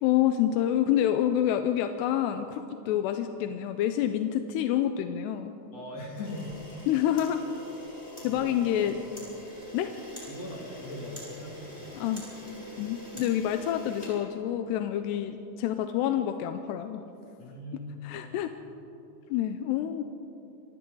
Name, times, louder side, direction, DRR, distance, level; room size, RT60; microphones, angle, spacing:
voice 1, 0.0-5.5 6.9-7.4 8.2-8.9 9.7-9.9 12.0-12.2 12.8-17.0 18.0-18.5 19.3-20.0, left 11 dB, 85° left, 7 dB, 2.8 m, -27 dB
voice 2, 5.7-6.5 8.2-9.3 10.3-12.1 17.4-18.3, left 1 dB, 40° left, -1 dB, 3.1 m, -41 dB
Camera, 6.2-14.9, left 1 dB, 10° left, 7.2 m, -44 dB
28.5 x 25.0 x 3.9 m, 2.8 s
omnidirectional pair, 4.8 m